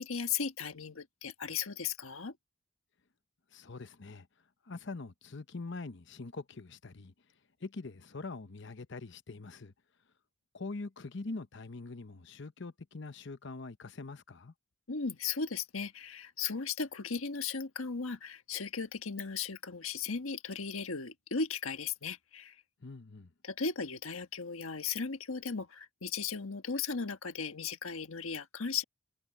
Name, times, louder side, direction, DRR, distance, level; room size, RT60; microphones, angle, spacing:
voice 1, 0.0-2.3 14.9-22.5 23.4-28.8, left 5 dB, 85° left, 1.4 m, -36 dB
voice 2, 3.5-4.3 4.6-7.1 7.6-9.7 10.5-14.5 22.8-23.3, left 3 dB, 60° left, 0.8 m, -43 dB
head